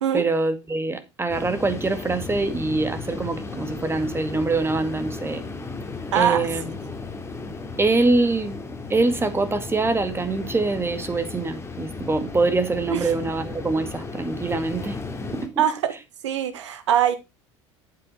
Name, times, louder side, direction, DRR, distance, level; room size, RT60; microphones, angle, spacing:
voice 1, 0.1-5.4 6.1-6.7 7.8-8.6 8.9-15.0 15.3-15.6, right 3 dB, 15° right, 2.0 m, -24 dB
sound 1, 1.3-15.5, left 3 dB, 15° left, 2.3 m, -35 dB
voice 2, 6.1-6.5 12.9-13.0 15.6-15.9 16.2-17.2, right 9 dB, 75° right, 1.6 m, -22 dB
8.5 x 8.2 x 4.1 m
figure-of-eight pair, 70°, 15 cm